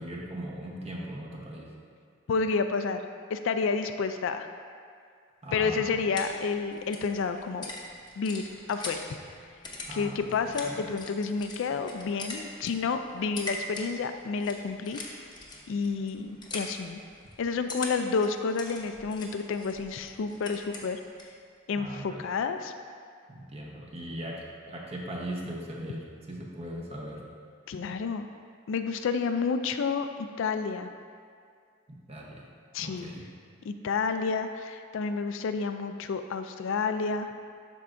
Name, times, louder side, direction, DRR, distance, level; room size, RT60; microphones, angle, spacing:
voice 1, 0.0-1.7 5.4-6.0 9.8-10.3 10.6-10.8 21.8-22.2 23.3-27.2 31.9-32.4 32.8-33.2, right 1 dB, 30° right, -2 dB, 0.9 m, -39 dB
voice 2, 2.3-3.0 3.3-4.5 5.5-7.7 8.2-9.1 9.9-15.0 15.7-17.0 17.4-21.0 21.7-22.7 27.7-28.3 28.7-30.9 32.7-33.1 33.6-37.3, left 5 dB, 65° left, 8 dB, 0.3 m, -30 dB
sound 1, 5.8-21.4, left 2 dB, 20° left, 0.8 m, -43 dB
12.0 x 4.6 x 2.6 m, 2.2 s
head